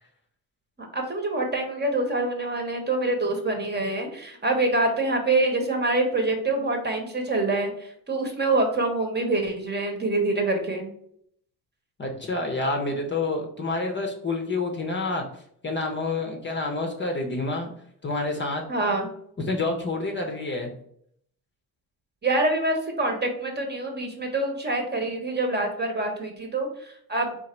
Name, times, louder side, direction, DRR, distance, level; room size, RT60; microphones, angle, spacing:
voice 1, 0.8-10.9 18.7-19.1 22.2-27.4, right 2 dB, 25° right, 3 dB, 1.0 m, -26 dB
voice 2, 12.0-15.2 15.6-17.7 18.0-18.6 19.4-20.7, left 2 dB, 30° left, 2 dB, 0.7 m, -28 dB
3.8 x 2.6 x 4.3 m, 0.68 s
cardioid pair, 95°, 39 cm